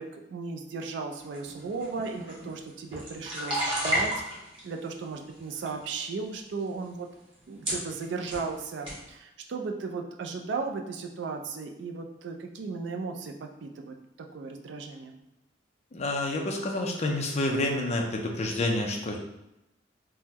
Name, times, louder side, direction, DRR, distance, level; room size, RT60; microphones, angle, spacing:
voice 1, 0.0-4.1 4.6-7.1 7.5-15.2, right 4 dB, 70° right, 3 dB, 0.4 m, -36 dB
sound 1, 1.3-4.6 5.3-5.8 6.6-6.7 7.3-7.4 7.6-8.5 8.8-9.0, equal, 30° right, 1.0 m, -32 dB
voice 2, 15.9-19.2, left 1 dB, 35° left, 1 dB, 0.5 m, -28 dB
3.5 x 2.1 x 2.8 m, 0.90 s
head